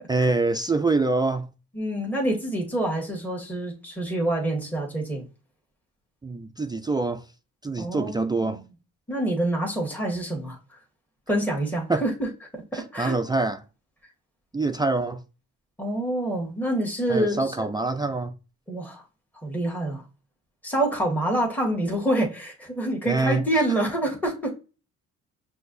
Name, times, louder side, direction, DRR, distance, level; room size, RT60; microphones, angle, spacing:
voice 1, 0.1-1.5 6.2-7.2 7.6-8.6 11.9-12.0 12.7-13.6 14.5-15.2 17.1-18.3 23.1-23.4, right 3 dB, 15° right, 0.3 m, -25 dB
voice 2, 1.7-5.2 7.8-8.6 9.1-10.8 11.3-13.2 15.8-17.7 18.7-19.0 19.4-20.0 20.6-24.5, right 1 dB, 5° left, 1.4 m, -27 dB
5.9 x 2.7 x 2.6 m
cardioid pair, 90°, 30 cm